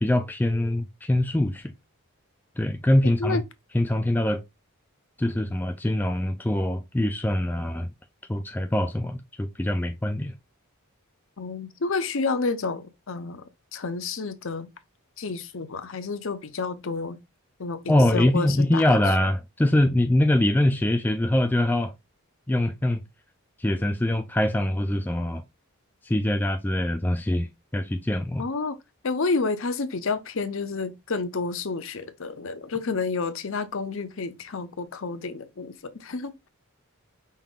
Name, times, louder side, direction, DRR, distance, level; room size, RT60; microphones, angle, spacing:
voice 1, 0.0-1.7 2.6-3.4 3.7-4.4 5.2-7.9 8.3-10.3 17.9-21.9 22.5-23.0 23.6-25.4 26.0-28.4, left 1 dB, 10° left, 0.3 m, -23 dB
voice 2, 11.4-13.4 13.7-14.7 15.2-17.2 17.6-19.0 28.4-28.8 29.0-36.5, left 4 dB, 60° left, 0.7 m, -30 dB
5.4 x 2.7 x 3.7 m
head